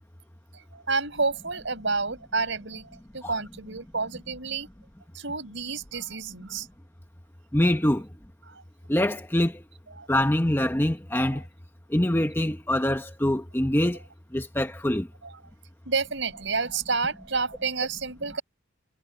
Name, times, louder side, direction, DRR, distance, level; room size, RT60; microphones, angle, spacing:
voice 1, 0.7-4.7 5.1-6.7 8.5-8.6 10.0-10.1 15.2-15.4 15.9-18.4, right 4 dB, 60° right, 5.0 m, -30 dB
voice 2, 7.5-8.1 8.9-9.5 10.1-11.4 11.9-14.0 14.3-15.1, left 1 dB, 10° left, 1.0 m, -24 dB
head